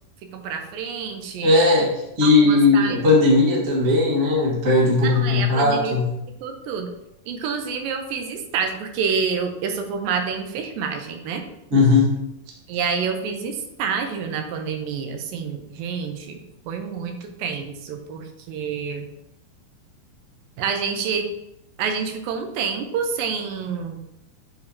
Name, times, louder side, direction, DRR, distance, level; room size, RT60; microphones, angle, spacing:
voice 1, 0.3-1.5 2.2-3.0 3.4-3.5 5.0-6.0 6.4-6.9 7.3-11.4 12.7-13.5 13.8-16.4 16.7-19.1 20.6-21.3 21.8-24.0, right 6 dB, 85° right, 5 dB, 2.5 m, -28 dB
voice 2, 1.4-1.9 2.2-6.1 11.7-12.1, left 3 dB, 60° right, -3 dB, 0.8 m, -17 dB
7.7 x 5.2 x 2.7 m, 0.86 s
omnidirectional pair, 4.1 m